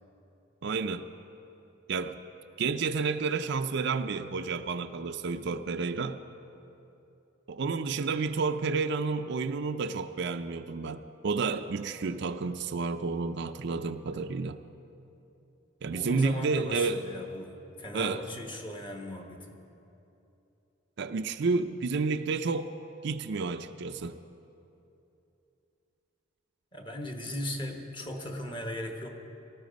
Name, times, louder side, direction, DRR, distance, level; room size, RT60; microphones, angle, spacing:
voice 1, 0.6-1.1 1.9-2.1 2.6-6.2 7.5-14.6 15.8-17.0 17.9-18.2 21.0-22.7 23.0-24.2, right 4 dB, 60° right, 9 dB, 0.5 m, -30 dB
voice 2, 15.9-17.5 17.8-19.6 26.7-29.1, left 1 dB, 25° left, 3 dB, 1.2 m, -37 dB
18.5 x 13.0 x 5.2 m, 2.9 s
head